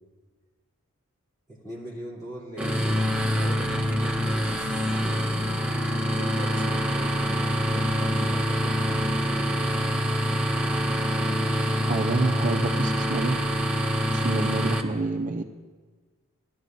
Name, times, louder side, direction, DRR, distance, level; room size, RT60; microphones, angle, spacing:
voice 1, 1.5-5.5 6.1-9.7, right 1 dB, 20° left, -6 dB, 2.9 m, -41 dB
sound 1, 2.6-14.8, equal, 5° right, 0.7 m, -25 dB
sound 2, 7.5-9.3, left 2 dB, 60° left, 4.0 m, -42 dB
voice 2, 11.9-13.4 14.1-15.4, right 3 dB, 40° right, 4 dB, 0.4 m, -28 dB
19.0 x 12.0 x 2.6 m, 1.4 s
head